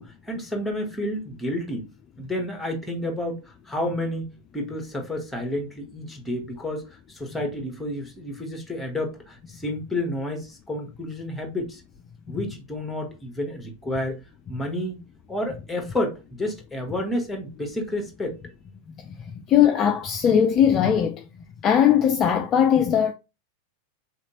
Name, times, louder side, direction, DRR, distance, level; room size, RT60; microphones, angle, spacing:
voice 1, 0.0-1.9 2.2-11.8 12.3-14.2 14.5-15.0 15.3-18.4, left 1 dB, 5° left, 1.1 m, -30 dB
voice 2, 19.1-21.2 21.6-23.1, left 9 dB, 30° left, 0.3 m, -20 dB
3.6 x 2.8 x 2.8 m
figure-of-eight pair, 90°, 0 cm